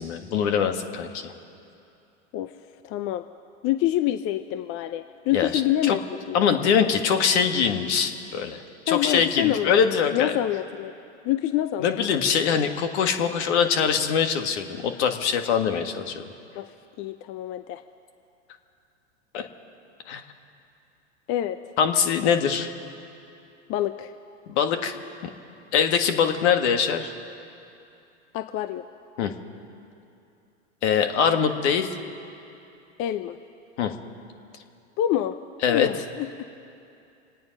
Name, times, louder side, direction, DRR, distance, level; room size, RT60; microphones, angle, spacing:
voice 1, 0.0-1.3 5.3-5.5 5.8-6.0 6.3-10.3 11.8-16.2 19.3-19.5 20.1-20.2 21.8-22.7 24.5-25.0 25.7-27.1 29.2-29.3 30.8-32.0 33.8-33.9 35.6-35.9, left 7 dB, 60° left, 6 dB, 1.6 m, -23 dB
voice 2, 2.8-3.3 3.6-6.4 8.9-9.7 10.1-10.9 11.2-12.6 16.6-16.7 17.0-17.8 21.3-21.6 23.7-24.1 28.3-28.8 33.0-33.4 35.0-35.4 35.7-36.4, left 12 dB, 35° left, 10 dB, 0.5 m, -27 dB
27.5 x 9.4 x 5.2 m, 2.6 s
hypercardioid pair, 105°, 37 cm